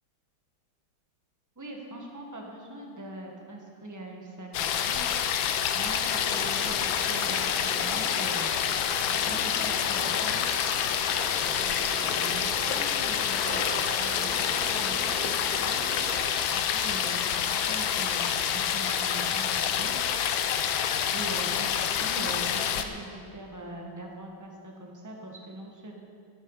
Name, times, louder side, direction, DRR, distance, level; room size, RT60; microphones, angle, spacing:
voice 1, 1.5-5.1 5.7-8.5 9.1-10.4 11.4-15.8 16.4-19.9 21.1-26.0, right 1 dB, 10° right, 0 dB, 1.4 m, -42 dB
sound 1, 4.5-22.8, left 8 dB, 75° left, 1.4 m, -27 dB
sound 2, 6.1-16.1, right 1 dB, 45° right, 3.1 m, -40 dB
14.5 x 11.5 x 4.9 m, 2.3 s
omnidirectional pair, 2.2 m